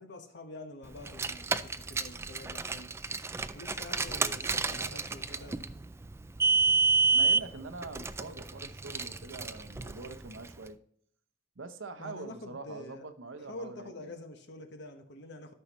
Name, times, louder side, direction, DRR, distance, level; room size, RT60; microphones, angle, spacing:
voice 1, 0.0-2.9 3.5-5.6 12.0-13.1 13.5-15.5, left 2 dB, 60° left, 6 dB, 1.1 m, -46 dB
Car, 1.0-10.5, right 4 dB, 15° right, 0.3 m, -30 dB
voice 2, 4.4-5.0 5.3-5.6 7.1-10.8 11.6-14.1, right 3 dB, 75° right, 10 dB, 0.8 m, -44 dB
13.0 x 5.7 x 3.0 m, 0.64 s
head